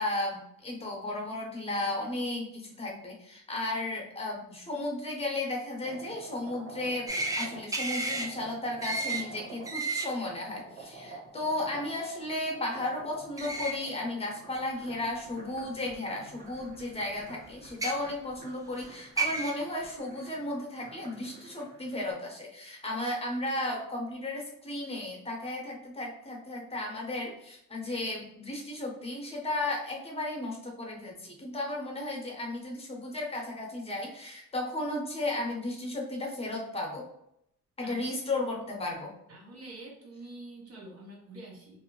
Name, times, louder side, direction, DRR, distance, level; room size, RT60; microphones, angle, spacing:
voice 1, 0.0-7.1 7.4-37.1 37.8-39.1, left 2 dB, 20° left, -1 dB, 0.9 m, -34 dB
sound 1, 5.8-22.1, right 2 dB, 90° right, 1.4 m, -49 dB
sound 2, 7.1-7.5 7.7-8.3 8.8-9.2 9.6-10.1 13.4-13.7 14.5-14.6 15.9-16.0 17.7-17.9 18.8-18.9 19.2-19.5, right 3 dB, 10° right, 0.4 m, -31 dB
voice 2, 39.3-41.8, right 2 dB, 50° right, -2 dB, 1.0 m, -46 dB
2.6 x 2.0 x 3.0 m, 0.74 s
cardioid pair, 90°, 30 cm